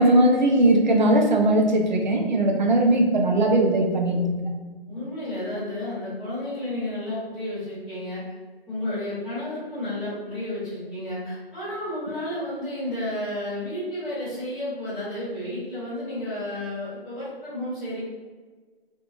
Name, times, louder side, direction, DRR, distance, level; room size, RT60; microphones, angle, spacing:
voice 1, 0.0-4.4, right 1 dB, 50° right, 1 dB, 0.6 m, -19 dB
voice 2, 4.9-8.2 8.7-18.0, left 1 dB, ahead, -21 dB, 0.7 m, -32 dB
3.8 x 2.7 x 2.3 m, 1.4 s
hypercardioid pair, 165°, 31 cm